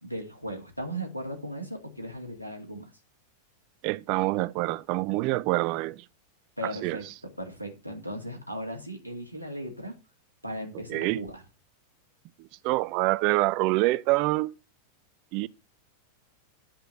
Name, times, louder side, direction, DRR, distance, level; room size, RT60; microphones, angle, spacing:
voice 1, 0.0-2.9 6.6-10.0 10.4-11.4, equal, 90° left, 2.6 m, -37 dB
voice 2, 3.8-6.0 6.6-7.0 10.9-11.2 12.4-14.5 15.3-15.5, right 20 dB, 45° right, 0.5 m, -26 dB
10.0 x 4.9 x 7.9 m
figure-of-eight pair, 90°, 0 cm